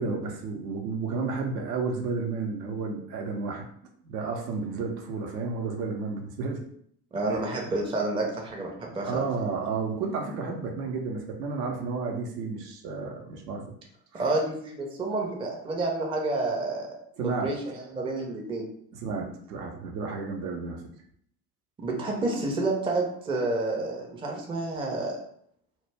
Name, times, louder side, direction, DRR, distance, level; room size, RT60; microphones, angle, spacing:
voice 1, 0.0-3.6 4.0-6.6 7.3-7.4 9.0-13.6 14.1-14.3 17.2-17.8 18.9-20.8, right 4 dB, 75° right, 1 dB, 0.7 m, -32 dB
voice 2, 7.1-9.2 14.1-16.9 17.2-18.7 21.8-25.2, right 2 dB, 10° right, 0 dB, 0.4 m, -29 dB
2.2 x 2.0 x 3.3 m, 0.66 s
hypercardioid pair, 70°, 49 cm